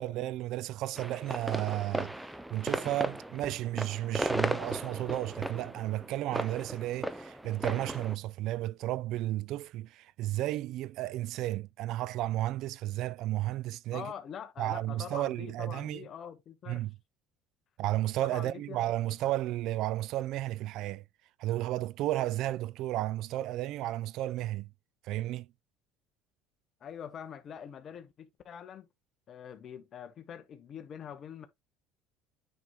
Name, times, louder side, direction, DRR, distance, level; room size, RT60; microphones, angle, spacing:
voice 1, 0.0-2.2 2.5-14.1 14.6-16.1 16.7-16.9 17.8-21.0 21.4-24.7 25.0-25.5, right 15 dB, 60° right, 0.3 m, -33 dB
sound 1, 1.0-8.2, right 1 dB, 5° right, 0.5 m, -36 dB
voice 2, 13.9-16.8 18.2-18.8 19.2-19.3 23.0-23.1 26.8-28.9 29.3-31.5, left 8 dB, 40° left, 1.1 m, -44 dB
9.3 x 4.5 x 2.3 m
cardioid pair, 135°, 0 cm